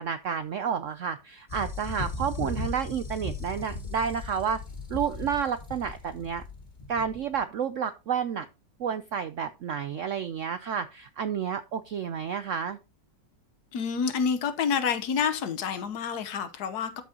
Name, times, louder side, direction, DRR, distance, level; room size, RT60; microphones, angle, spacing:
voice 1, 0.0-4.6 4.9-6.4 6.9-8.5 8.8-12.8, right 7 dB, 80° right, 0.7 m, -30 dB
sound 1, 1.5-7.4, left 3 dB, 25° left, 1.5 m, -37 dB
voice 2, 13.7-17.0, left 6 dB, 65° left, 1.5 m, -28 dB
12.5 x 6.1 x 2.8 m
omnidirectional pair, 1.9 m